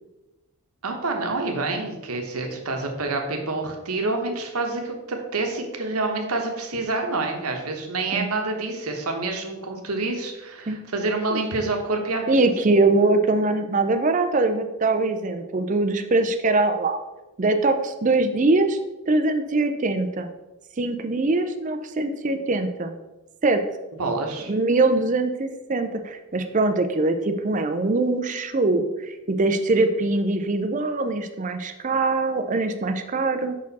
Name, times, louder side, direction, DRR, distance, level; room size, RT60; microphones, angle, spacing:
voice 1, 0.8-12.4 24.0-24.5, right 3 dB, 85° right, 2 dB, 1.1 m, -27 dB
voice 2, 12.3-17.0 17.4-18.8 19.1-20.3 20.8-22.9 23.4-23.6 24.5-33.5, right 2 dB, 35° right, 8 dB, 0.4 m, -22 dB
6.1 x 4.3 x 4.1 m, 1.1 s
head